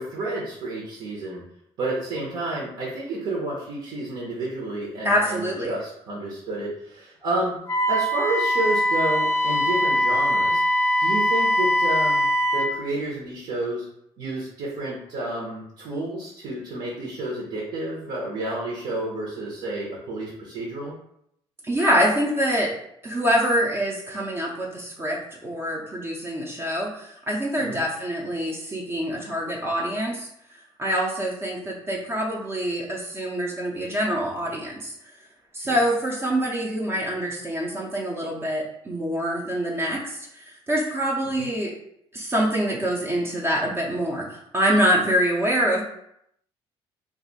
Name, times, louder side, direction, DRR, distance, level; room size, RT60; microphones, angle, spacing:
voice 1, 0.0-1.4 1.8-7.5 7.9-10.6 11.0-12.2 12.5-13.9 14.2-20.9 27.6-27.8 35.6-35.7 41.4-41.5, right 2 dB, 65° right, -4 dB, 0.9 m, -30 dB
voice 2, 5.0-5.7 21.6-22.7 23.0-30.3 30.8-34.9 35.5-41.7 42.1-45.8, equal, 20° right, -3 dB, 0.5 m, -25 dB
Wind instrument woodwind instrument, 7.7-12.7, equal, 20° left, 0.6 m, -22 dB
2.6 x 2.4 x 3.9 m, 0.73 s
cardioid pair, 135°, 11 cm